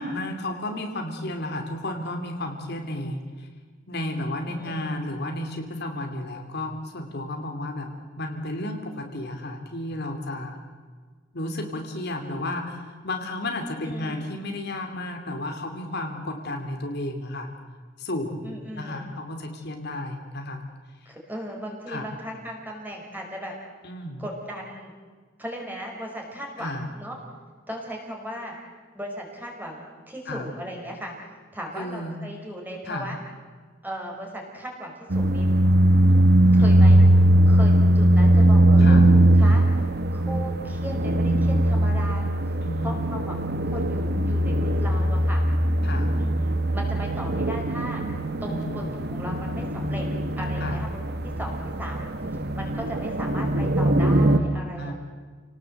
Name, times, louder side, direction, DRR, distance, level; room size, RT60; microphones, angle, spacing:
voice 1, 0.0-3.5 3.9-7.9 8.2-10.6 11.3-17.5 18.0-20.6 21.9-22.1 23.8-24.2 26.6-26.9 30.3-30.5 31.8-32.2 32.9-33.1 36.6-36.9 38.8-39.1 42.6-43.1 45.8-46.2 48.4-48.8 50.6-50.8 54.8-54.9, left 1 dB, 55° left, 4 dB, 2.8 m, -32 dB
voice 2, 4.5-5.0 13.8-14.3 18.4-19.1 21.1-23.5 24.2-24.9 25.4-27.2 27.7-28.5 28.9-31.1 31.5-33.2 33.8-35.6 36.5-37.0 37.5-39.6 40.1-42.3 42.8-43.4 43.6-45.4 46.2-48.0 48.4-48.8 49.1-50.1 50.4-52.0 52.3-54.9, equal, 10° right, 0 dB, 5.3 m, -37 dB
sound 1, 35.1-54.4, right 1 dB, 55° right, 1.4 m, -20 dB
29.0 x 18.5 x 7.9 m, 1.5 s
head